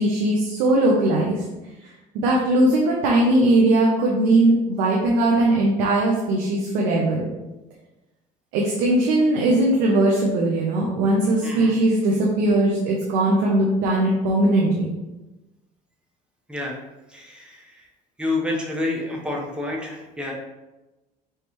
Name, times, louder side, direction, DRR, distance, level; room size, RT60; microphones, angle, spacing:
voice 1, 0.0-1.4 2.1-7.3 8.5-14.9, right 1 dB, 90° right, -2 dB, 0.7 m, -19 dB
voice 2, 11.4-11.8 16.5-16.8 17.1-17.6 18.2-20.3, left 2 dB, 5° right, -2 dB, 1.0 m, -28 dB
4.7 x 3.2 x 3.1 m, 1.1 s
cardioid pair, 95°, 18 cm